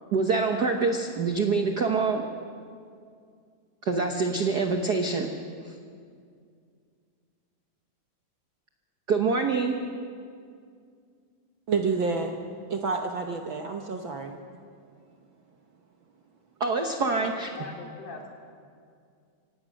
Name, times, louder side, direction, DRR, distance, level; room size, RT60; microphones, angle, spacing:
voice 1, 0.1-2.2 3.8-5.3 5.7-5.8 9.1-9.7 16.6-17.5, right 4 dB, 85° right, 4 dB, 0.8 m, -25 dB
voice 2, 11.7-12.4 12.7-14.4, right 4 dB, 65° right, 3 dB, 1.3 m, -29 dB
voice 3, 17.0-18.3, left 3 dB, 85° left, 1 dB, 4.0 m, -42 dB
24.5 x 17.5 x 6.3 m, 2.3 s
omnidirectional pair, 3.4 m